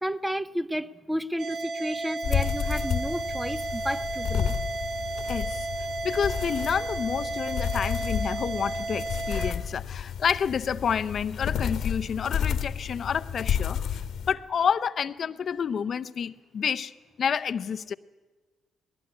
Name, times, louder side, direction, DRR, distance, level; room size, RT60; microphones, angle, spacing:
voice 1, 0.0-4.5, equal, 5° right, 0.6 m, -32 dB
sound 1, 1.4-9.5, right 3 dB, 65° right, 1.3 m, -33 dB
sound 2, 2.2-14.3, left 8 dB, 75° left, 1.2 m, -31 dB
voice 2, 5.3-5.7 6.0-14.0 14.3-16.9 17.2-17.9, left 7 dB, 55° left, 0.6 m, -29 dB
19.0 x 17.0 x 9.6 m
cardioid pair, 90°, 0 cm